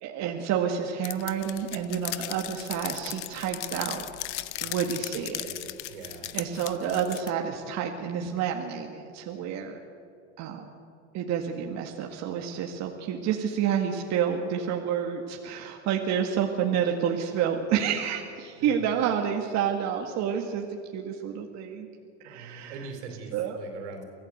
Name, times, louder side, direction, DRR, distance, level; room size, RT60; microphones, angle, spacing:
voice 1, 0.0-4.1 4.6-5.5 6.3-9.8 10.4-10.7 11.1-21.9 22.2-22.8 23.3-23.6, right 8 dB, 50° right, 1 dB, 2.0 m, -29 dB
sound 1, 1.0-7.3, left 16 dB, 85° left, 0.9 m, -37 dB
voice 2, 4.6-6.4 18.6-18.9 22.2-24.0, right 4 dB, 85° right, 4 dB, 4.6 m, -43 dB
24.0 x 16.0 x 8.1 m, 2.4 s
supercardioid pair, 115°, 34 cm